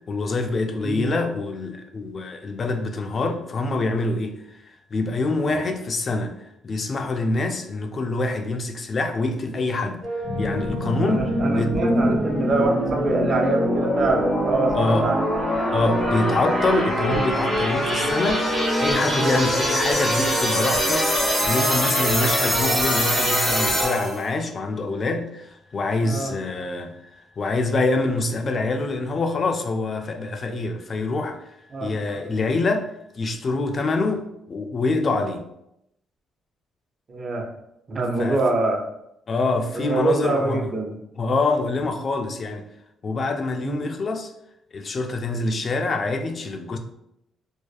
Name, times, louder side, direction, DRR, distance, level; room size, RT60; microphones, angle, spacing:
voice 1, 0.1-4.4 4.9-6.4 6.6-10.0 10.4-11.9 14.7-15.1 15.7-25.5 25.7-27.0 27.4-31.4 31.8-32.9 33.2-35.5 38.2-38.4 39.3-40.7 41.2-42.7 43.0-44.3 44.7-46.8, left 3 dB, 45° left, 0.3 m, -25 dB
sound 1, 10.0-17.2, right 1 dB, 20° right, 0.9 m, -34 dB
sound 2, 10.2-24.2, equal, ahead, 1.3 m, -23 dB
voice 2, 11.0-15.2 19.1-19.4 26.0-26.3 31.7-31.9 37.1-37.5 37.9-38.8 39.7-41.0 43.6-43.9, right 2 dB, 45° right, 0.5 m, -25 dB
2.5 x 2.3 x 2.3 m
cardioid pair, 90°, 0 cm